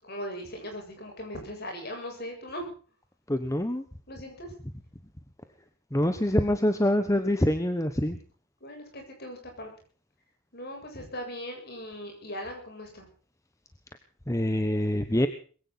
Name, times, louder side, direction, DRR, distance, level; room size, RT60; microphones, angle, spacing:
voice 1, 0.0-2.7 4.1-4.5 8.6-9.7 10.5-13.1, equal, 45° left, 3 dB, 7.7 m, -39 dB
voice 2, 3.3-3.8 5.9-8.2 14.3-15.3, left 1 dB, 15° left, 9 dB, 1.0 m, -25 dB
21.5 x 16.5 x 4.1 m, 0.41 s
head